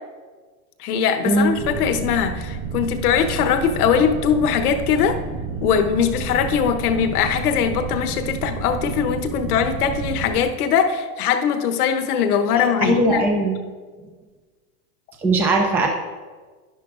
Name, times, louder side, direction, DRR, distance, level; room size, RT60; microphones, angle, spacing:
voice 1, 0.8-5.2 5.6-13.2, left 7 dB, 75° left, 6 dB, 1.1 m, -21 dB
sound 1, 1.6-10.4, right 4 dB, 50° right, 2.3 m, -30 dB
voice 2, 12.8-13.6 15.2-15.9, right 2 dB, 5° right, 2 dB, 0.3 m, -19 dB
10.5 x 10.5 x 2.5 m, 1.4 s
supercardioid pair, 135°, 45 cm